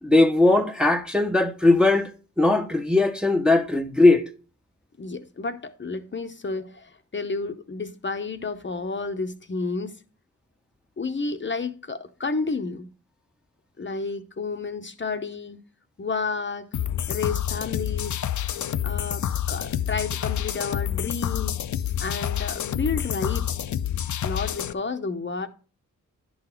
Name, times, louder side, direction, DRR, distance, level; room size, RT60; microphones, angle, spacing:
voice 1, 0.0-2.1 2.4-4.2, left 2 dB, 5° right, 0.8 m, -19 dB
voice 2, 5.0-10.0 11.0-12.9 13.8-15.6 16.0-16.7 17.1-18.2 18.8-21.6 22.0-23.6 24.2-25.5, left 4 dB, 35° left, 0.8 m, -31 dB
sound 1, 16.7-24.7, left 10 dB, 60° left, 0.5 m, -28 dB
10.5 x 4.0 x 4.5 m
cardioid pair, 60°, 33 cm